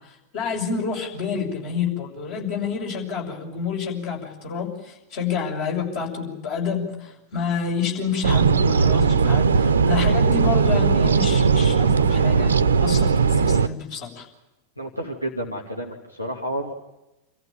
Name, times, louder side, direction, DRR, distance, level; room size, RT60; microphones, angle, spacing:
voice 1, 0.3-14.3, left 6 dB, 50° left, 0 dB, 6.8 m, -28 dB
sound 1, 8.2-13.7, right 5 dB, 70° right, 0.8 m, -18 dB
voice 2, 14.8-16.7, right 1 dB, 90° left, 0 dB, 2.4 m, -30 dB
27.5 x 15.0 x 9.1 m, 0.97 s
figure-of-eight pair, 90°, 0 cm